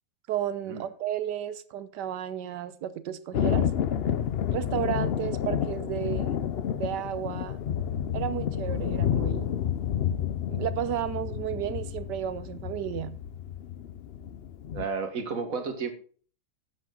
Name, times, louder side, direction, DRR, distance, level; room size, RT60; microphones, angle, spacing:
voice 1, 0.3-3.7 4.5-6.3 6.7-7.6 8.1-9.6 10.5-13.2, right 10 dB, 80° right, 1.4 m, -33 dB
Thunder, 3.3-14.9, left 9 dB, 80° left, 0.5 m, -30 dB
voice 2, 14.7-15.9, right 5 dB, 55° right, 1.8 m, -32 dB
12.0 x 7.7 x 3.8 m
omnidirectional pair, 1.8 m